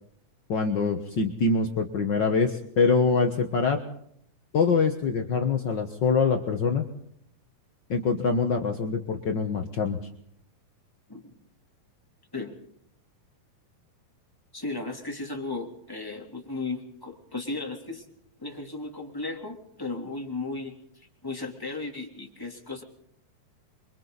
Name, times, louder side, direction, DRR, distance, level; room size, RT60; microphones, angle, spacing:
voice 1, 0.5-3.8 4.5-6.8 7.9-10.0, left 4 dB, 60° left, 4 dB, 1.1 m, -24 dB
voice 2, 14.5-18.0 18.4-22.8, left 3 dB, 5° left, 1 dB, 2.9 m, -35 dB
28.0 x 24.5 x 4.1 m, 0.69 s
omnidirectional pair, 4.1 m